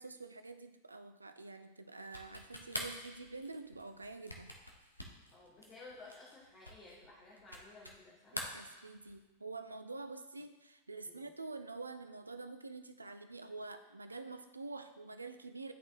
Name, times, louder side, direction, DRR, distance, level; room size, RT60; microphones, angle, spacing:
voice 1, 0.0-4.5 8.3-15.7, right 3 dB, 80° right, 9 dB, 0.4 m, -47 dB
sound 1, 2.0-8.0 8.3-9.3, left 1 dB, 85° left, 0.7 m, -46 dB
voice 2, 5.3-8.4 11.0-11.2, left 3 dB, 30° left, -5 dB, 1.3 m, -55 dB
11.0 x 4.0 x 2.5 m, 1.1 s
figure-of-eight pair, 90°, 0 cm